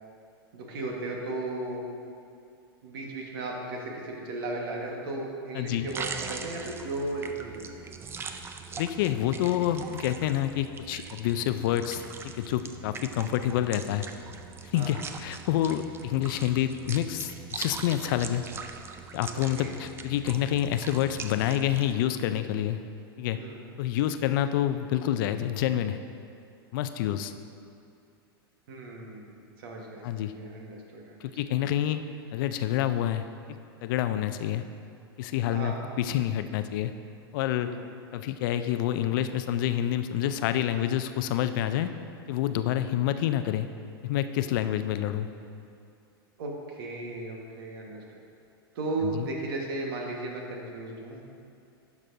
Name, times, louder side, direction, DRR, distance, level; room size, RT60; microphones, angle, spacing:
voice 1, 0.5-1.8 2.8-7.9 14.7-14.9 19.3-19.7 23.3-23.6 28.7-31.3 35.5-35.8 37.6-37.8 46.4-48.0 48.7-51.2, right 2 dB, 65° right, 0 dB, 1.4 m, -36 dB
voice 2, 5.5-5.9 8.8-12.0 12.4-14.1 14.7-18.4 19.1-22.8 23.2-23.4 23.8-26.0 26.7-27.3 30.0-30.3 31.2-32.0 32.3-34.6 35.2-36.9 37.3-37.7 38.1-41.9 42.3-43.7 44.0-45.3 49.2-49.3, left 11 dB, 60° left, 10 dB, 0.4 m, -28 dB
sound 1, 5.8-21.9, right 5 dB, 20° right, 0.4 m, -41 dB
10.5 x 6.0 x 2.6 m, 2.4 s
hypercardioid pair, 110°, 13 cm